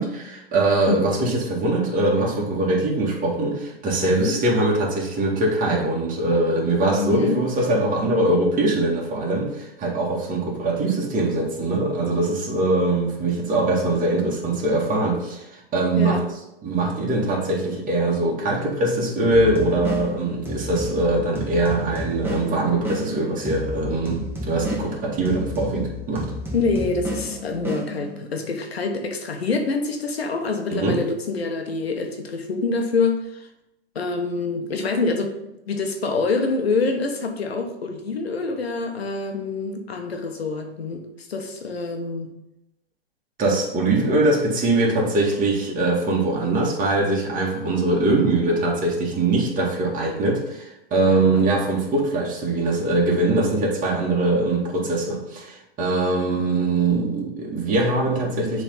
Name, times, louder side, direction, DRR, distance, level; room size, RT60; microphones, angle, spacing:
voice 1, 0.0-16.2 16.6-26.3 30.7-31.0 43.4-58.6, right 2 dB, 25° right, -2 dB, 2.2 m, -22 dB
voice 2, 0.9-1.3 4.0-4.4 6.9-7.4 16.0-16.2 26.5-33.5 33.9-35.4 35.7-42.3 51.0-51.5, left 4 dB, 85° left, 3 dB, 1.1 m, -26 dB
sound 1, 19.3-28.4, left 1 dB, 10° right, 1.6 m, -32 dB
7.0 x 3.8 x 5.6 m, 0.88 s
hypercardioid pair, 105°, 30 cm